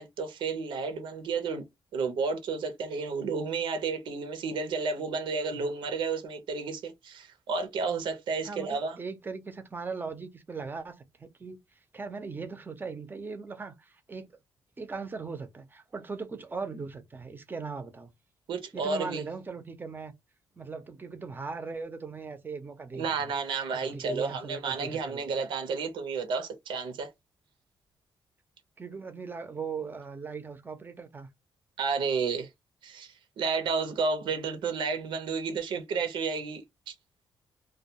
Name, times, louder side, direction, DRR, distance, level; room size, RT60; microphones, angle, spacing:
voice 1, 0.0-1.7 1.9-9.0 18.5-19.2 22.9-27.1 31.8-32.5 32.8-36.9, right 4 dB, 85° right, 0.7 m, -31 dB
voice 2, 8.4-11.6 11.9-14.3 14.8-18.1 18.7-20.1 20.6-23.3 23.7-25.3 28.8-31.3, right 4 dB, 25° right, 0.6 m, -39 dB
2.3 x 2.2 x 2.7 m
cardioid pair, 115°, 8 cm